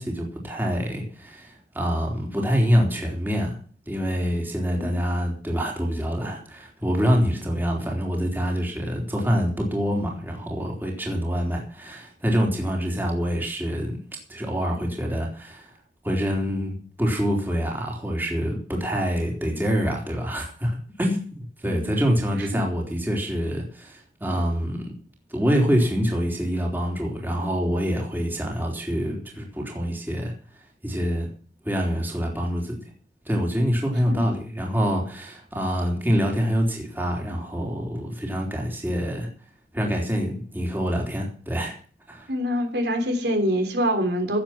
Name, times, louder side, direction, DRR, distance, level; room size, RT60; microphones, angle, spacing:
voice 1, 0.0-3.6 3.9-14.0 14.3-15.7 16.0-24.9 25.3-30.3 30.8-31.3 31.7-32.8 33.3-39.3 39.7-41.8 42.1-42.3, equal, 10° right, 0 dB, 3.4 m, -26 dB
voice 2, 4.7-5.0 21.6-21.9 22.5-22.7 34.1-34.3 42.3-44.4, equal, 65° right, 5 dB, 3.5 m, -25 dB
17.0 x 7.7 x 5.9 m, 0.43 s
head